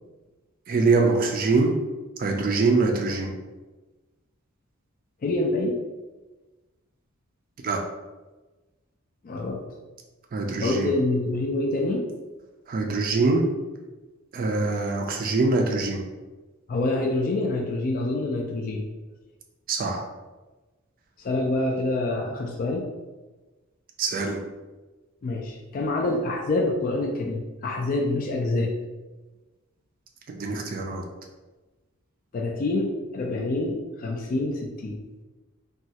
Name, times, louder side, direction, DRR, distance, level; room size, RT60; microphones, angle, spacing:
voice 1, 0.7-1.7 2.2-3.3 7.6-7.8 10.3-10.9 12.7-13.4 14.3-16.0 19.7-20.0 24.0-24.4 30.3-31.0, right 3 dB, 40° right, 2 dB, 0.3 m, -23 dB
voice 2, 5.2-5.8 9.2-9.6 10.6-12.0 16.7-18.9 21.2-22.9 25.2-28.7 32.3-35.0, left 2 dB, 40° left, 1 dB, 0.3 m, -26 dB
3.0 x 2.3 x 2.7 m, 1.2 s
head